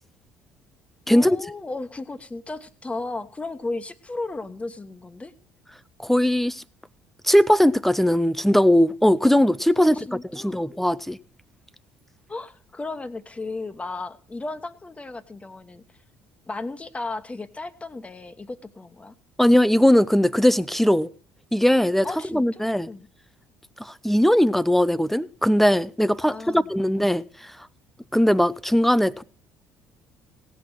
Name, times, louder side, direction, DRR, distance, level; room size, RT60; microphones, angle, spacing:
voice 1, 1.1-5.3 9.8-10.6 12.3-16.0 16.4-19.1 22.0-23.1 26.2-26.9, left 3 dB, 20° left, 1.1 m, -35 dB
voice 2, 6.0-6.6 7.2-10.0 10.3-11.2 19.4-21.1 21.5-22.1 22.3-22.9 23.8-27.5 28.1-29.2, equal, 5° left, 0.5 m, -19 dB
17.0 x 6.3 x 6.1 m
figure-of-eight pair, 55°, 7 cm